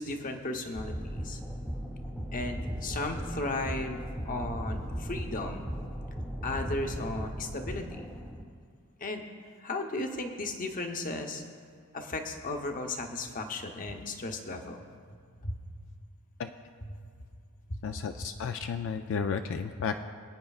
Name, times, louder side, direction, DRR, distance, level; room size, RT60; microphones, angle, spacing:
voice 1, 0.0-1.4 2.3-5.7 6.4-8.1 9.0-9.2 9.6-11.4 11.9-14.9 15.4-15.5 16.9-17.0 17.7-17.8, left 2 dB, 40° left, 4 dB, 0.8 m, -35 dB
sound 1, 0.7-8.4, equal, 5° left, 0.8 m, -37 dB
voice 2, 17.8-20.0, left 6 dB, 60° left, 7 dB, 0.4 m, -33 dB
23.0 x 9.2 x 2.4 m, 2.2 s
head